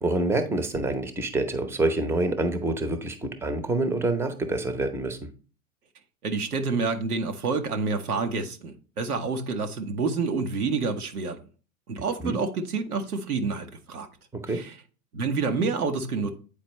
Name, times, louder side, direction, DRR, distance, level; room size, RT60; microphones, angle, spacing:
voice 1, 0.0-5.3 12.0-12.4 14.4-14.6, right 2 dB, 5° right, 0.7 m, -27 dB
voice 2, 6.2-11.4 11.9-14.1 14.5-14.7 15.1-16.3, right 4 dB, 90° right, 1.1 m, -28 dB
8.6 x 4.2 x 3.1 m
hypercardioid pair, 100°, 43 cm